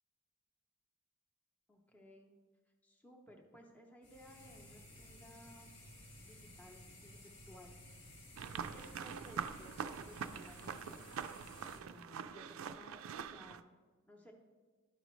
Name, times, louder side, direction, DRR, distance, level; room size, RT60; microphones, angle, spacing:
voice 1, 1.7-2.4 2.8-5.7 6.2-7.8 8.5-11.1 11.7-13.6 14.1-14.3, equal, 5° left, 0 dB, 0.6 m, -58 dB
sound 1, 4.0-11.8, left 1 dB, 75° left, 1.4 m, -56 dB
sound 2, 8.4-13.6, right 7 dB, 80° right, 0.3 m, -44 dB
12.0 x 5.0 x 3.1 m, 1.4 s
head